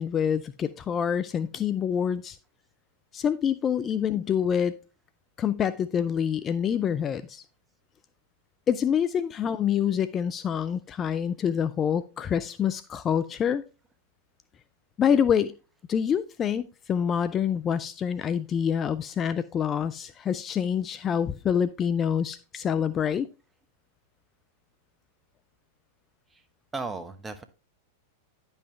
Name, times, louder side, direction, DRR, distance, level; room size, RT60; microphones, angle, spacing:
voice 1, 0.0-2.4 3.1-4.8 5.4-7.4 8.7-13.6 15.0-15.5 15.9-23.3, left 8 dB, 30° left, 14 dB, 0.4 m, -26 dB
voice 2, 26.7-27.4, right 3 dB, 15° right, 9 dB, 1.0 m, -35 dB
10.5 x 5.6 x 3.2 m, 0.32 s
hypercardioid pair, 95°, 0 cm